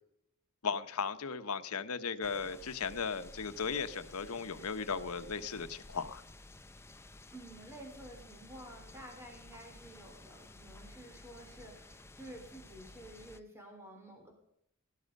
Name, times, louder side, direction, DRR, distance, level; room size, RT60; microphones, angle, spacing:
voice 1, 0.6-6.2, left 5 dB, 85° left, 11 dB, 1.0 m, -36 dB
sound 1, 2.2-13.4, left 2 dB, 10° left, 0.6 m, -54 dB
voice 2, 7.3-14.3, right 1 dB, 10° right, 2 dB, 3.6 m, -51 dB
17.5 x 11.5 x 5.4 m, 0.75 s
head